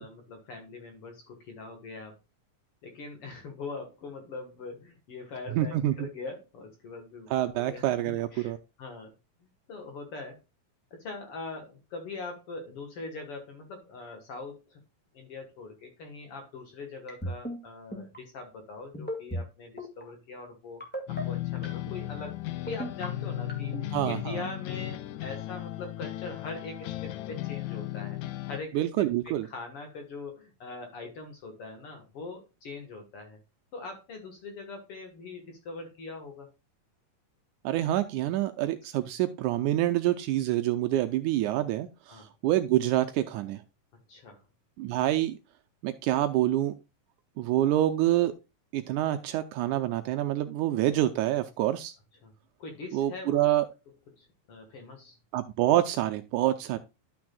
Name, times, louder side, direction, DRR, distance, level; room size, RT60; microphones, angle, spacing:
voice 1, 0.0-2.1 2.8-7.3 7.5-8.5 8.8-9.1 9.7-10.4 10.9-14.8 15.1-20.8 21.1-22.4 22.6-28.2 28.5-28.8 29.3-33.4 33.7-36.5 42.1-42.3 44.1-44.4 52.2-52.3 52.6-53.4 54.2-55.2, left 3 dB, 55° left, 5 dB, 2.0 m, -42 dB
voice 2, 5.5-6.1 7.3-8.6 23.9-24.4 28.7-29.5 37.6-43.6 44.8-45.4 45.8-46.7 47.4-48.3 48.7-51.9 52.9-53.7 55.3-56.8, right 13 dB, 80° right, 8 dB, 1.9 m, -27 dB
sound 1, 17.1-17.6 17.9-18.2 18.9-19.4 19.8-20.0 20.8-21.2 21.6-22.0 22.7-23.1 23.5-23.8, right 1 dB, 5° left, 0.8 m, -35 dB
sound 2, 21.1-28.6, left 14 dB, 80° left, 1.8 m, -35 dB
12.0 x 6.1 x 2.3 m, 0.27 s
omnidirectional pair, 3.8 m